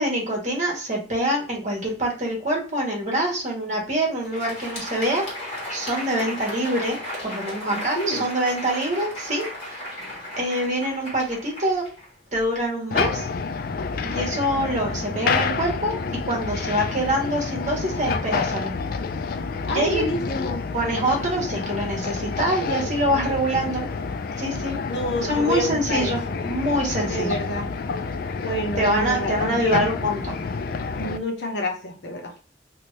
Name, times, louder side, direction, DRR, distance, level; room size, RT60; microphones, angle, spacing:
voice 1, 0.0-5.2 5.7-9.8 10.4-11.8 12.3-13.3 14.0-15.9 16.2-18.7 19.7-20.0 20.7-23.9 24.4-24.8 25.2-27.4 28.8-30.3, right 1 dB, 45° right, -1 dB, 1.2 m, -25 dB
Crowd, 4.1-12.6, left 1 dB, 35° left, 1.6 m, -35 dB
voice 2, 7.7-8.2 19.6-20.6 24.9-26.1 27.0-27.7 28.4-29.9 30.9-32.3, equal, 75° left, 2 dB, 0.9 m, -28 dB
sound 1, 12.9-31.2, left 4 dB, 55° left, 0.3 m, -28 dB
2.8 x 2.7 x 3.1 m, 0.41 s
head